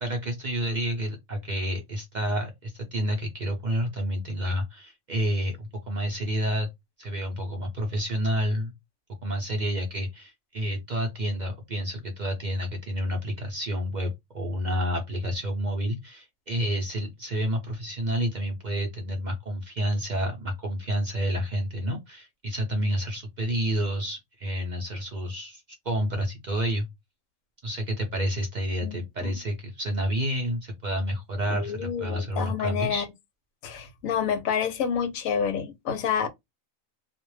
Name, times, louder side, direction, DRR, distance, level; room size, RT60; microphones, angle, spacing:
voice 1, 0.0-6.7 7.0-8.7 9.2-26.9 27.6-33.1, equal, 50° right, 0.5 m, -29 dB
voice 2, 28.8-29.3 31.5-33.1 33.6-36.3, left 7 dB, 90° left, 1.0 m, -28 dB
2.4 x 2.1 x 3.1 m
omnidirectional pair, 1.4 m